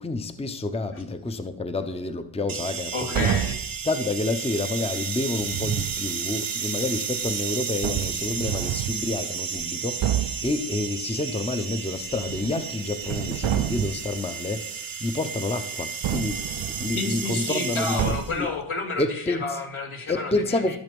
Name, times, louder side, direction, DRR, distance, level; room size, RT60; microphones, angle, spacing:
voice 1, 0.0-3.3 3.8-18.5 19.0-19.6 20.1-20.8, left 2 dB, 10° left, 8 dB, 0.7 m, -29 dB
sound 1, 2.5-18.4, right 6 dB, 45° right, 1.0 m, -33 dB
voice 2, 2.9-3.6 16.9-20.8, left 3 dB, 80° left, 1 dB, 2.5 m, -30 dB
sound 2, 3.1-3.7 5.4-6.0 7.3-7.4 7.8-9.0 9.5-9.7 10.0-10.5 12.0-12.7 13.0-14.1 16.0-17.0 18.0-18.5, right 10 dB, 70° right, 0.7 m, -28 dB
14.0 x 6.9 x 5.3 m, 0.69 s
wide cardioid pair, 105°, 49 cm